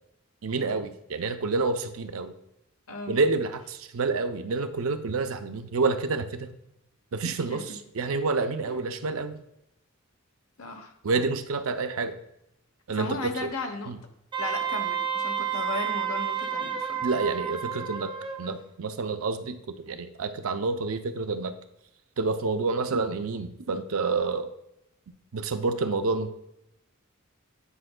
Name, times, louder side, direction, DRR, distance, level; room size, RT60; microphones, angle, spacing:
voice 1, 0.4-2.3 3.1-6.5 7.1-7.6 8.0-9.4 11.0-12.2 12.9-13.3 13.9-14.0 17.0-18.1 18.4-21.5 22.2-24.5 25.3-26.3, right 3 dB, 70° right, 8 dB, 0.5 m, -28 dB
voice 2, 2.9-3.2 7.2-7.8 8.6-8.8 10.6-10.9 12.9-14.0 14.4-17.0, left 3 dB, 70° left, 5 dB, 0.9 m, -36 dB
Wind instrument woodwind instrument, 14.3-18.5, right 8 dB, 20° right, 0.6 m, -30 dB
10.0 x 5.3 x 2.2 m, 0.86 s
head